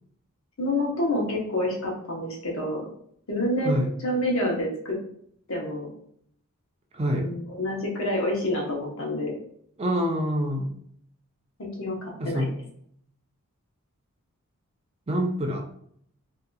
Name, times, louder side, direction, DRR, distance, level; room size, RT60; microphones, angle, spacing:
voice 1, 0.6-2.8 3.3-3.7 4.0-5.0 5.5-5.9 7.2-9.3 11.6-12.5, left 1 dB, 60° left, -1 dB, 1.0 m, -28 dB
voice 2, 6.9-7.3 9.8-10.7 12.2-12.5 15.1-15.6, equal, 25° right, 2 dB, 0.5 m, -26 dB
3.8 x 2.8 x 2.3 m, 0.65 s
head